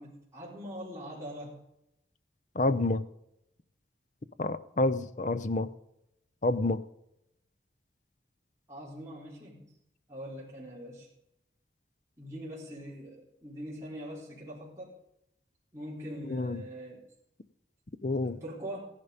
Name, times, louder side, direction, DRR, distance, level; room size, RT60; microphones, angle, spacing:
voice 1, 0.0-1.6 8.7-9.7 10.1-11.1 12.2-14.9 15.7-17.0 18.2-18.8, equal, 15° right, -7 dB, 4.0 m, -42 dB
voice 2, 2.6-3.0 4.4-5.7 6.4-6.8 16.2-16.6 18.0-18.4, left 2 dB, 45° left, 13 dB, 0.6 m, -28 dB
15.5 x 11.0 x 5.1 m, 0.83 s
head